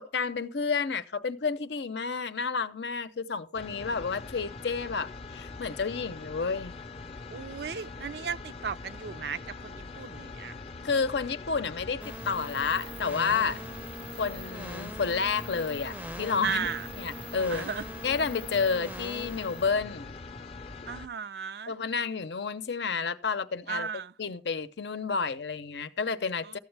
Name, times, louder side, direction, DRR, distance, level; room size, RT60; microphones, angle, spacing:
voice 1, 0.0-6.8 10.8-13.6 14.2-17.7 18.0-20.1 21.7-23.9 24.2-26.6, left 5 dB, 70° left, 0.6 m, -30 dB
sound 1, 3.5-21.1, left 3 dB, 35° left, 0.6 m, -43 dB
voice 2, 7.3-10.5 16.4-16.9 17.5-17.8 20.9-21.7 23.7-24.1, right 6 dB, 60° right, 0.4 m, -35 dB
sound 2, 12.0-19.7, right 1 dB, 10° right, 0.5 m, -42 dB
13.5 x 8.0 x 3.3 m
head